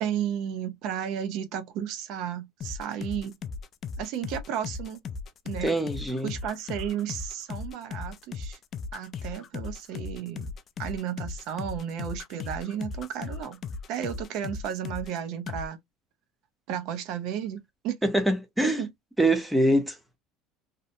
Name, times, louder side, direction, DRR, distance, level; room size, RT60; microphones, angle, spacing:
voice 1, 0.0-3.4 4.0-5.0 5.5-5.7 6.2-8.6 8.9-10.5 10.8-13.6 13.9-15.8 16.7-18.0 18.6-18.9, right 9 dB, 60° right, 0.5 m, -33 dB
sound 1, 2.6-15.2 15.5-15.7, left 5 dB, 35° left, 0.3 m, -37 dB
voice 2, 5.6-6.3 18.0-18.8 19.2-20.2, right 1 dB, 5° right, 0.6 m, -24 dB
2.7 x 2.1 x 2.6 m
cardioid pair, 145°, 0 cm